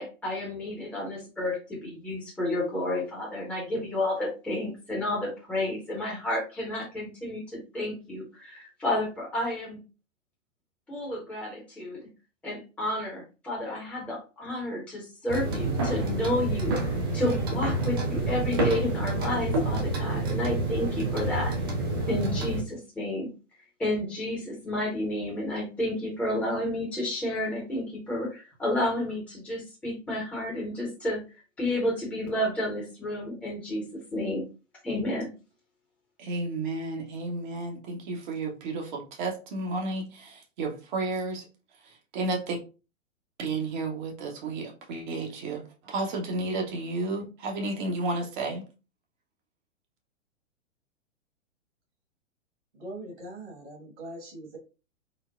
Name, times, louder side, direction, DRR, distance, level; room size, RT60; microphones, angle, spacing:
voice 1, 0.0-9.8 10.9-12.0 12.4-21.5 22.1-23.3 23.8-31.2 31.6-33.8 34.1-34.4 34.8-35.3, left 1 dB, 5° left, -4 dB, 0.8 m, -31 dB
sound 1, 15.3-22.6, right 2 dB, 20° right, 0.3 m, -28 dB
voice 2, 36.2-41.5 42.1-42.6 43.4-48.6, right 2 dB, 40° right, 1 dB, 0.8 m, -32 dB
voice 3, 52.7-54.6, right 1 dB, 60° right, 0 dB, 1.5 m, -41 dB
3.9 x 2.1 x 2.3 m, 0.32 s
figure-of-eight pair, 110°, 38 cm